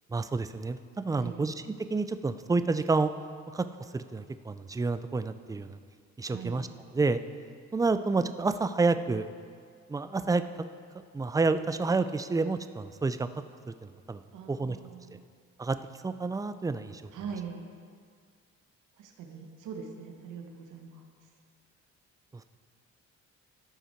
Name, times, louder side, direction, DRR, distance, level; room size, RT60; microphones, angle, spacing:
voice 1, 0.1-1.5 1.9-3.1 3.5-3.7 3.9-5.8 6.2-6.7 6.9-7.2 7.7-9.3 9.9-10.4 10.9-13.3 13.8-14.2 14.5-14.8 15.6-15.8 16.0-17.0 22.3-22.4, right 3 dB, 10° right, 11 dB, 0.3 m, -29 dB
voice 2, 6.2-6.6 14.3-15.3 17.1-17.7 18.9-21.0, right 6 dB, 85° right, 2 dB, 1.2 m, -42 dB
14.0 x 5.5 x 4.5 m, 2.1 s
cardioid pair, 90°, 30 cm